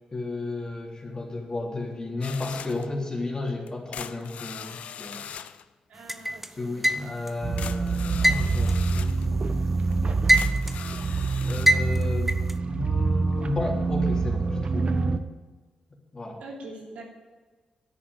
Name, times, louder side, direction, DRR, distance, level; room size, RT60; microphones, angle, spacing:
voice 1, 0.1-5.5 6.6-10.0 11.5-12.4 12.7-15.0 16.1-16.4, left 2 dB, 35° left, -1 dB, 3.6 m, -33 dB
sound 1, 2.2-2.9 3.7-5.6 7.2-7.3 7.6-9.3 9.9-10.0 10.3-11.7, left 8 dB, 75° left, 0.5 m, -40 dB
voice 2, 5.9-6.7 16.4-17.0, right 2 dB, 80° right, -1 dB, 3.1 m, -43 dB
sound 2, 6.1-7.4 8.2-9.6 10.0-10.9 11.7-12.5, right 1 dB, 10° right, 0.8 m, -23 dB
sound 3, 7.4-15.2, right 3 dB, 50° right, 1.0 m, -26 dB
10.5 x 8.7 x 8.0 m, 1.3 s
cardioid pair, 60°, 2 cm